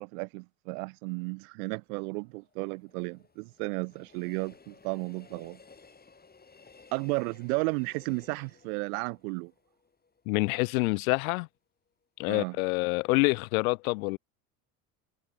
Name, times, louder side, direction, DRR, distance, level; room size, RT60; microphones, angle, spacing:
voice 1, 0.0-5.6 6.9-9.5 12.3-12.6, right 31 dB, 65° right, 3.0 m, -33 dB
Train, 1.8-10.9 11.2-11.3, left 4 dB, 20° left, 7.1 m, -57 dB
voice 2, 10.3-11.5 12.2-14.2, left 27 dB, 65° left, 0.5 m, -27 dB
hypercardioid pair, 75°, 47 cm